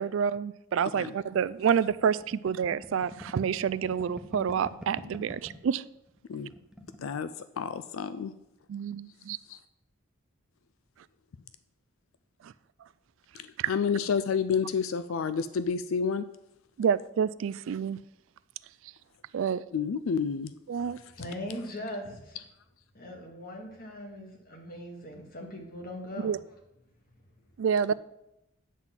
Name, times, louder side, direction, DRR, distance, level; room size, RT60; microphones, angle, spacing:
voice 1, 0.0-5.8 8.7-9.4 12.4-12.5 13.6-13.7 16.8-18.0 19.3-19.6 20.7-21.0 26.2-26.4 27.6-27.9, right 7 dB, 70° right, 0.3 m, -28 dB
sound 1, 1.2-5.7 6.1-6.2 6.4-7.0, equal, 5° right, 0.6 m, -46 dB
voice 2, 7.6-8.3 13.3-16.2 19.7-20.5, left 6 dB, 80° left, 0.4 m, -29 dB
voice 3, 21.2-22.4 22.9-26.3, left 1 dB, 45° left, 1.8 m, -40 dB
9.4 x 4.0 x 7.3 m
head